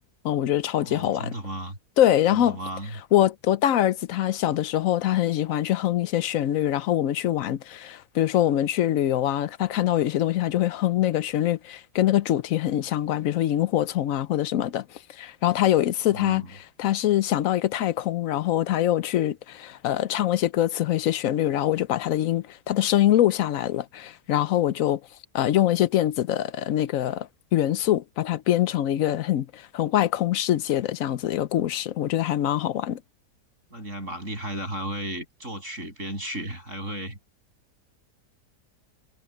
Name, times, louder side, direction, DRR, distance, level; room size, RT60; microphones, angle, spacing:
voice 1, 0.2-1.3 2.0-2.6 3.1-14.8 15.2-16.4 16.8-25.0 25.3-33.0, left 12 dB, 65° left, 1.0 m, -24 dB
voice 2, 0.8-1.8 2.3-3.0 16.1-16.4 33.7-37.2, right 1 dB, 50° right, 7.9 m, -34 dB
omnidirectional pair, 1.7 m